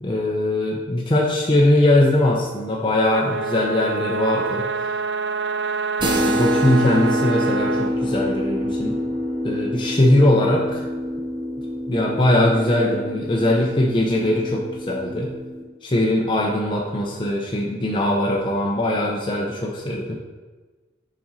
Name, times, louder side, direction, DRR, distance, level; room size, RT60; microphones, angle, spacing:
voice 1, 0.0-4.6 6.0-9.0 9.4-10.8 11.9-15.3 15.8-20.1, left 1 dB, 25° left, -2 dB, 0.6 m, -20 dB
sound 1, 3.1-7.9, right 5 dB, 70° right, 0.4 m, -26 dB
sound 2, 6.0-15.6, left 1 dB, 25° right, 0.7 m, -26 dB
5.8 x 5.1 x 4.1 m, 1.3 s
head